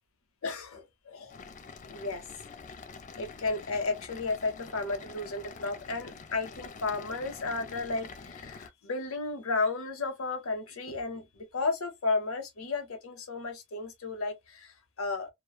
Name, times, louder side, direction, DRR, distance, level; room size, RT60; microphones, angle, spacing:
voice 1, 0.4-1.4 1.9-2.2 3.2-15.3, left 3 dB, 80° left, 0.9 m, -33 dB
sound 1, 1.3-8.7, left 5 dB, 35° left, 0.3 m, -46 dB
3.0 x 2.2 x 2.3 m
head